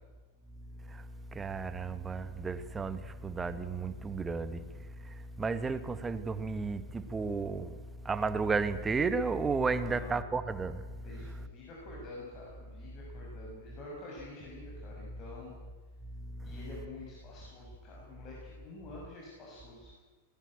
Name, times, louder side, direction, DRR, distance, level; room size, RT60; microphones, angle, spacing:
voice 1, 0.7-11.5 16.0-16.6, right 4 dB, 15° right, 1.5 m, -34 dB
voice 2, 9.7-10.3 11.0-15.5 16.4-19.9, left 2 dB, 35° left, 6.7 m, -48 dB
19.5 x 19.0 x 9.1 m
figure-of-eight pair, 90°, 0 cm